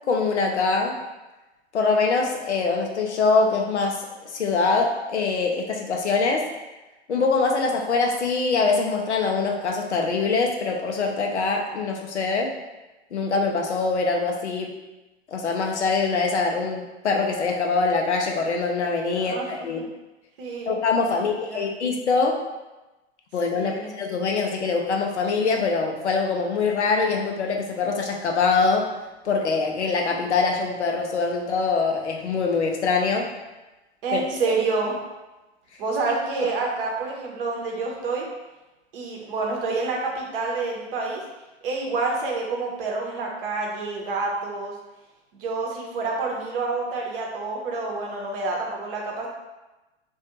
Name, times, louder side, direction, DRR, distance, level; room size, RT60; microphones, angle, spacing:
voice 1, 0.1-1.0 1.7-4.1 4.3-6.5 7.1-12.5 13.1-14.7 15.3-19.8 20.7-22.4 23.3-28.9 29.2-33.3 34.1-34.2 36.4-36.5, left 4 dB, 80° left, 1 dB, 0.5 m, -23 dB
voice 2, 19.1-19.5 20.4-20.7 21.1-21.6 23.5-23.9 34.0-35.0 35.8-38.3 38.9-41.2 41.6-44.7 45.3-49.3, right 3 dB, 55° right, -1 dB, 0.7 m, -28 dB
2.4 x 2.2 x 2.8 m, 1.1 s
figure-of-eight pair, 90°, 34 cm